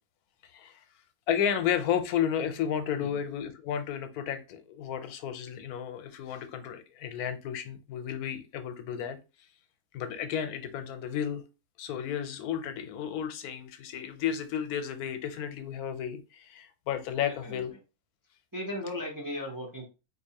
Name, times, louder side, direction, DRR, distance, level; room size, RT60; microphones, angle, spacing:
voice 1, 0.4-0.8 1.3-9.2 9.9-11.4 11.8-17.7, left 9 dB, 85° left, 1.1 m, -32 dB
voice 2, 17.3-17.6 18.5-19.9, left 1 dB, 25° right, 0.4 m, -37 dB
3.9 x 2.7 x 2.7 m
omnidirectional pair, 1.6 m